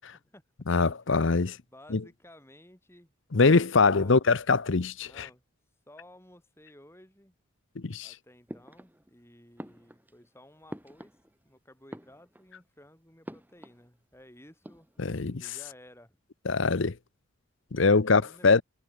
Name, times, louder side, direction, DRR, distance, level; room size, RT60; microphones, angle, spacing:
voice 1, 0.7-1.6 1.9-2.0 3.3-5.3 7.8-8.1 15.0-15.5 16.4-17.0 17.7-18.6, left 4 dB, 60° left, 0.7 m, -23 dB
voice 2, 1.5-4.3 5.0-5.4 5.9-7.4 8.0-11.2 11.4-14.9 15.4-16.2 17.7-18.5, left 1 dB, 10° left, 7.9 m, -55 dB
sound 1, 8.5-9.2 9.6-11.5 11.8-12.6 13.2-13.9 14.1-14.2 14.5-15.2, equal, 10° right, 3.4 m, -46 dB
head